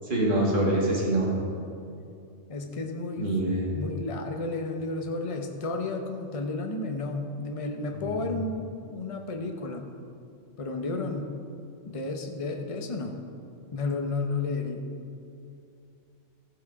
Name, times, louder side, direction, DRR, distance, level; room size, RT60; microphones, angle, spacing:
voice 1, 0.0-1.3 3.2-3.7 7.9-8.2, right 1 dB, 40° right, -5 dB, 2.3 m, -25 dB
voice 2, 2.5-3.3 3.7-9.9 10.6-11.4 11.9-13.2 13.7-14.8, left 3 dB, 30° left, 3 dB, 0.9 m, -32 dB
14.5 x 7.7 x 4.8 m, 2.5 s
omnidirectional pair, 1.4 m